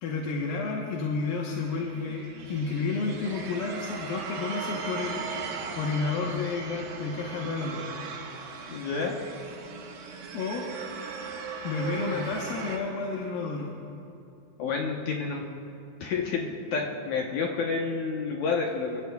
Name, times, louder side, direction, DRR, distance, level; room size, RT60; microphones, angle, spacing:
voice 1, 0.0-7.8 10.3-10.7 11.6-13.7, left 4 dB, 85° left, -2 dB, 2.9 m, -31 dB
sound 1, 1.5-12.8, right 5 dB, 80° right, 3.1 m, -38 dB
voice 2, 8.7-9.2 14.6-15.4 16.0-19.0, left 5 dB, 65° left, -1 dB, 2.1 m, -29 dB
24.0 x 24.0 x 2.3 m, 2.6 s
omnidirectional pair, 4.0 m